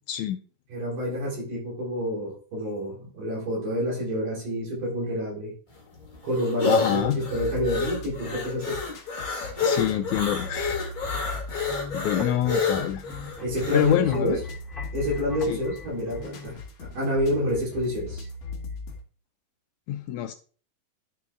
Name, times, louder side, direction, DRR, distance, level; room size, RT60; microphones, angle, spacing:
voice 1, 0.7-5.5 6.2-8.8 11.8-11.9 12.5-12.6 13.4-14.4 14.9-18.3, equal, 70° right, -6 dB, 5.5 m, -28 dB
sound 1, 5.7-14.0, left 4 dB, 35° left, 0.8 m, -29 dB
voice 2, 6.7-7.2 9.6-10.8 11.9-13.0 13.7-14.4 15.5-15.6 19.9-20.3, left 12 dB, 80° left, 7 dB, 1.7 m, -26 dB
sound 2, 7.0-19.0, left 3 dB, 55° left, 2.2 m, -39 dB
sound 3, 9.9-16.5, left 3 dB, ahead, 2.0 m, -43 dB
11.0 x 5.8 x 3.6 m, 0.41 s
omnidirectional pair, 4.0 m